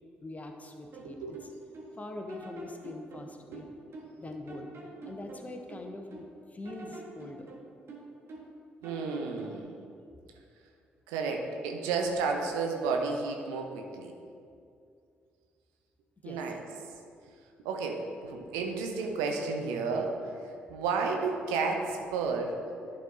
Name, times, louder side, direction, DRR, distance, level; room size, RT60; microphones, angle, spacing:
voice 1, 0.2-1.5 2.0-3.7 4.2-4.7 5.0-7.5 16.2-16.4, left 2 dB, 30° left, 4 dB, 0.9 m, -43 dB
sound 1, 0.9-1.9 2.3-4.2 4.5-6.3 6.6-8.6 8.8-9.6, right 3 dB, 50° right, 1.4 m, -47 dB
voice 2, 1.0-1.4 3.5-3.6 8.8-9.8 11.1-14.1 16.2-16.6 17.6-22.6, right 4 dB, 75° right, 2 dB, 0.7 m, -32 dB
11.0 x 4.1 x 3.8 m, 2.4 s
hypercardioid pair, 45°, 5 cm